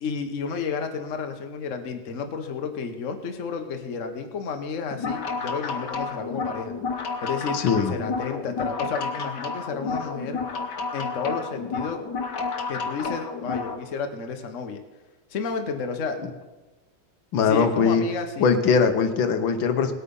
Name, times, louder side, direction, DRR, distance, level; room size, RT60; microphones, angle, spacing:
voice 1, 0.0-6.7 7.2-7.6 7.9-10.4 10.9-12.0 12.7-14.8 15.3-16.2 17.4-18.5, left 5 dB, 45° left, 5 dB, 1.4 m, -31 dB
sound 1, 4.9-13.8, left 4 dB, 65° left, 1.7 m, -31 dB
voice 2, 7.5-7.9 17.3-18.0 18.4-19.9, left 6 dB, 90° left, 7 dB, 1.8 m, -21 dB
19.0 x 8.5 x 5.4 m, 1.2 s
omnidirectional pair, 2.1 m